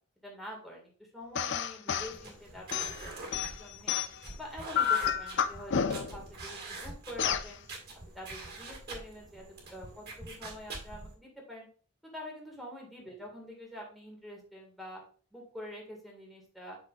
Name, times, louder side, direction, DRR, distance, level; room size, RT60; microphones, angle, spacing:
voice 1, 0.2-4.0 4.4-7.6 8.1-9.4 9.7-11.7 12.1-15.0 15.3-16.8, equal, ahead, -2 dB, 2.0 m, -46 dB
sound 1, 1.4-2.2 2.7-4.3 4.7-6.2 7.2-7.5, left 7 dB, 50° left, 0.5 m, -30 dB
sound 2, 2.0-11.1, right 2 dB, 45° right, 2.0 m, -45 dB
8.4 x 5.9 x 2.5 m, 0.41 s
head